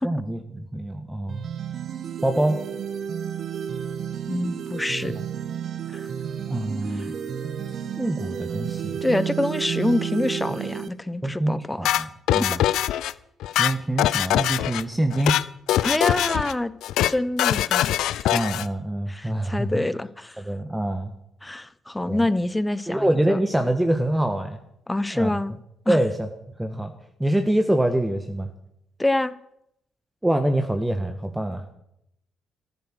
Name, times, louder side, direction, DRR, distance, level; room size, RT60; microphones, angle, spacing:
voice 1, 0.0-1.4 2.2-2.6 5.0-5.2 6.5-7.2 8.0-9.0 11.2-12.6 13.6-15.3 18.3-19.8 20.4-21.1 22.1-22.2 22.9-24.6 25.1-25.3 25.9-26.3 26.6-26.9 27.2-28.5 30.2-31.7, right 1 dB, 10° right, 6 dB, 1.6 m, -25 dB
sound 1, 1.3-10.9, right 8 dB, 55° right, 1.2 m, -31 dB
voice 2, 4.3-5.2 5.9-6.1 6.9-7.1 9.0-12.1 12.4-12.6 15.8-16.7 17.0-17.9 18.2-18.3 19.1-20.4 21.4-23.4 24.9-25.5 25.9-26.0 29.0-29.3, left 1 dB, 15° left, 17 dB, 1.0 m, -26 dB
sound 2, 11.8-13.1 13.4-14.8 15.1-15.4 15.7-16.5 16.8-17.1 17.4-18.7, left 13 dB, 70° left, 0.5 m, -22 dB
14.5 x 12.5 x 6.3 m, 0.77 s
hypercardioid pair, 45°, 0 cm